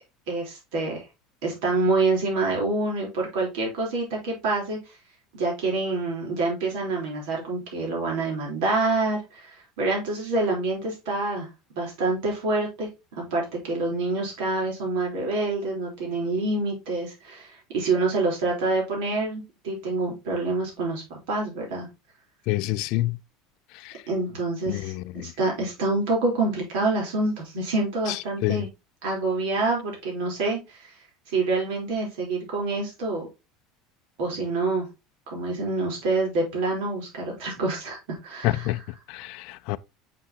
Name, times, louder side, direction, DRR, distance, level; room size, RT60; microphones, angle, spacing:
voice 1, 0.3-1.0 1.4-5.0 5.3-11.5 11.8-21.9 24.1-28.7 29.0-31.0 31.3-33.3 34.2-34.9 35.3-38.7, right 3 dB, 75° right, 3.5 m, -27 dB
voice 2, 22.5-23.2 23.8-24.0 24.7-25.3 28.4-28.6 38.4-38.8 39.1-39.8, left 18 dB, 60° left, 0.3 m, -27 dB
6.6 x 5.9 x 2.8 m
cardioid pair, 150°, 0 cm